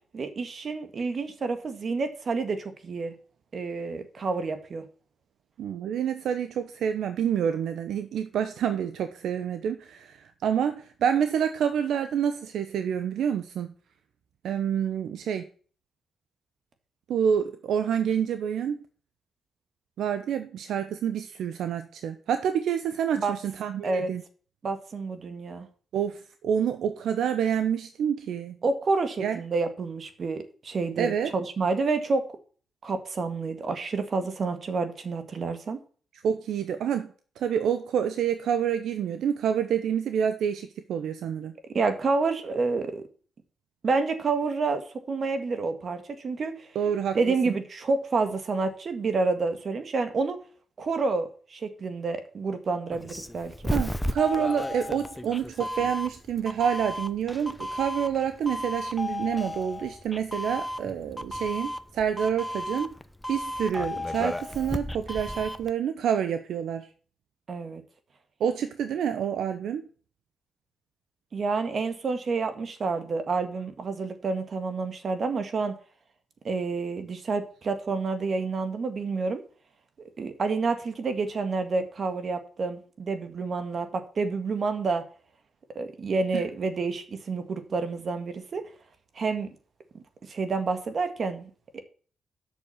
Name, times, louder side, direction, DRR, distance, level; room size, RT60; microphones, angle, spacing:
voice 1, 0.1-3.1 3.5-4.8 23.1-23.4 23.8-24.1 24.6-25.7 28.6-32.2 32.8-35.8 41.7-43.0 43.8-44.8 45.1-46.7 47.1-50.4 50.8-53.7 67.5-67.8 71.3-75.8 76.4-79.4 80.2-85.0 85.8-88.6 89.2-89.6 89.9-90.0 90.3-91.8, right 4 dB, 50° right, 8 dB, 1.9 m, -29 dB
voice 2, 5.6-13.7 14.4-15.5 17.1-18.8 20.0-24.2 25.9-28.6 29.2-29.4 31.0-31.3 36.2-41.5 46.7-47.2 47.5-47.6 53.7-62.9 63.3-66.9 68.4-69.8 86.3-86.4, right 8 dB, 80° right, 9 dB, 0.8 m, -28 dB
Doorbell, 52.9-65.7, left 1 dB, 5° left, 0.8 m, -34 dB
8.3 x 6.6 x 7.1 m, 0.42 s
cardioid pair, 75°, 0 cm